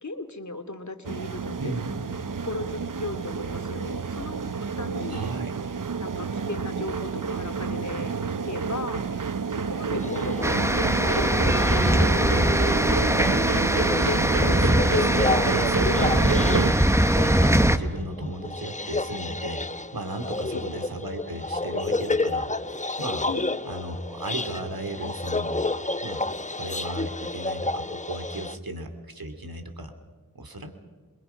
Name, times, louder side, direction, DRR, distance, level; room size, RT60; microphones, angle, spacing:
voice 1, 0.0-1.7 2.4-4.3 4.6-5.3 6.0-9.0 9.5-12.2 20.5-20.7 23.3-23.5, left 2 dB, 50° left, 7 dB, 2.5 m, -36 dB
sound 1, 1.0-16.7, right 5 dB, 60° right, 0.8 m, -29 dB
voice 2, 1.6-2.0 5.1-5.5 13.2-22.5 23.0-23.3 23.7-25.7 26.0-26.2 26.5-29.9 30.3-30.7, right 1 dB, 80° right, 7 dB, 3.1 m, -35 dB
sound 2, 10.0-28.6, left 3 dB, 20° left, 0.9 m, -31 dB
sound 3, 10.4-17.8, right 1 dB, 10° right, 1.3 m, -22 dB
27.5 x 22.5 x 5.8 m, 1.4 s
wide cardioid pair, 40°, 36 cm